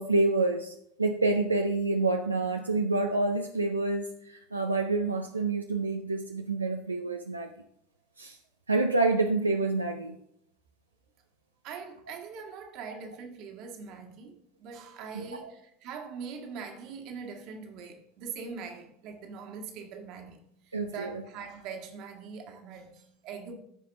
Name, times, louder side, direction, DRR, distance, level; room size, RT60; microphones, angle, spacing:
voice 1, 0.0-7.5 8.2-8.4 8.7-10.2 15.1-15.5 20.7-21.2, right 2 dB, 90° right, 0.4 m, -28 dB
voice 2, 11.6-23.5, right 5 dB, 55° right, 1.6 m, -42 dB
14.5 x 4.9 x 3.4 m
figure-of-eight pair, 75°, 0 cm